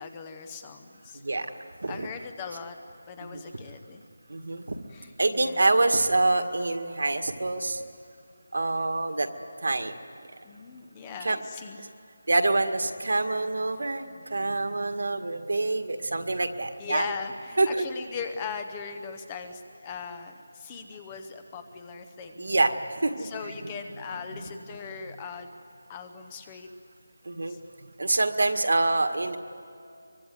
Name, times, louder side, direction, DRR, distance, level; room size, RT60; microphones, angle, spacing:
voice 1, 0.0-1.2 1.9-2.8 3.1-4.0 4.9-5.8 10.4-11.9 16.8-22.5 23.2-25.5 25.9-26.7 27.5-27.6, left 5 dB, 10° left, 7 dB, 0.7 m, -39 dB
voice 2, 1.1-1.5 1.8-2.1 3.3-3.4 4.3-4.8 5.2-7.8 8.5-9.3 9.6-10.0 11.2-11.4 12.3-17.1 17.6-17.9 22.4-23.3 27.3-27.6 28.0-29.4, right 2 dB, 60° right, 7 dB, 1.9 m, -26 dB
24.0 x 23.5 x 9.5 m, 2.5 s
figure-of-eight pair, 180°, 0 cm